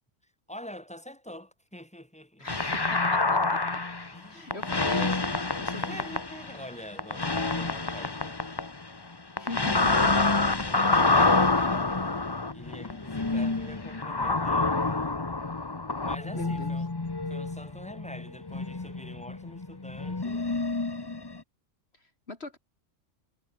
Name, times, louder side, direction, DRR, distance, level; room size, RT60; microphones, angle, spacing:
voice 1, 0.2-2.5 4.1-4.6 4.9-5.2 5.7-8.4 9.4-11.6 12.5-14.8 16.0-16.9 17.3-20.5, equal, 5° left, 6.0 m, -45 dB
voice 2, 2.4-3.6 4.3-5.2 5.6-6.0 9.4-9.8 16.3-16.8 21.9-22.6, left 2 dB, 55° left, 3.5 m, -41 dB
sound 1, 2.5-4.2 4.5-6.7 7.0-9.0 9.4-21.4, left 3 dB, 20° left, 1.0 m, -27 dB
omnidirectional pair, 1.3 m